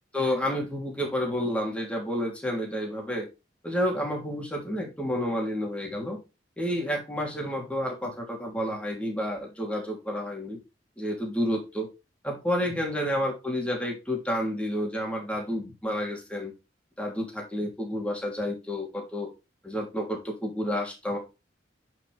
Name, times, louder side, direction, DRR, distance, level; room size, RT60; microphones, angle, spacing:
voice 1, 0.1-3.3 3.6-6.2 6.6-10.6 11.0-11.9 12.2-16.5 17.0-19.3 19.6-21.2, equal, 5° left, 0 dB, 3.1 m, -30 dB
9.7 x 6.3 x 3.4 m, 0.26 s
head